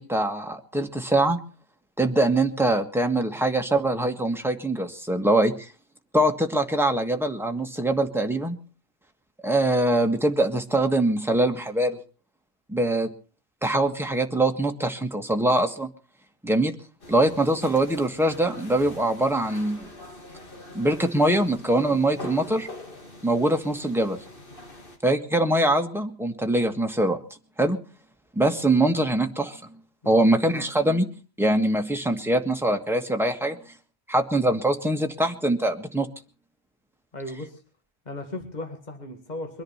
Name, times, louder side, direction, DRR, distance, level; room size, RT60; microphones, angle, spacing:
voice 1, 0.0-1.4 2.0-5.7 6.1-8.6 9.4-12.0 12.7-13.1 13.6-15.9 16.4-16.7 17.1-19.9 20.7-22.7 23.2-24.2 25.0-27.2 27.6-27.8 28.3-29.6 30.0-31.1 31.4-33.6 34.1-36.1, right 1 dB, ahead, 4 dB, 1.6 m, -23 dB
sound 1, 17.0-25.0, left 2 dB, 60° left, 2.6 m, -43 dB
voice 2, 30.0-30.3 37.1-37.6 38.1-39.6, left 1 dB, 45° left, 5 dB, 2.2 m, -36 dB
23.0 x 10.5 x 5.8 m, 0.39 s
omnidirectional pair, 1.1 m